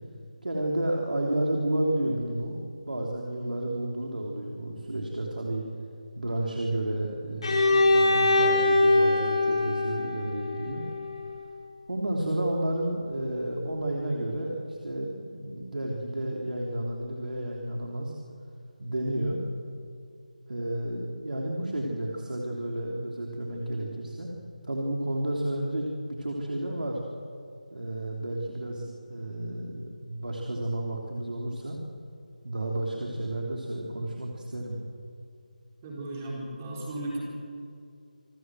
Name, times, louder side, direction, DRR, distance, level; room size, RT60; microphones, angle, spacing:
voice 1, 0.4-2.6 2.9-5.7 6.1-10.8 11.9-18.1 18.8-19.4 20.5-24.3 24.6-27.0 27.7-31.8 32.4-34.8, right 1 dB, 80° right, -1 dB, 3.3 m, -31 dB
Bowed string instrument, 7.4-11.2, left 2 dB, 40° left, 6.3 m, -23 dB
voice 2, 35.8-37.2, right 1 dB, 15° right, -3 dB, 4.0 m, -35 dB
27.5 x 14.0 x 7.8 m, 2.4 s
figure-of-eight pair, 175°, 5 cm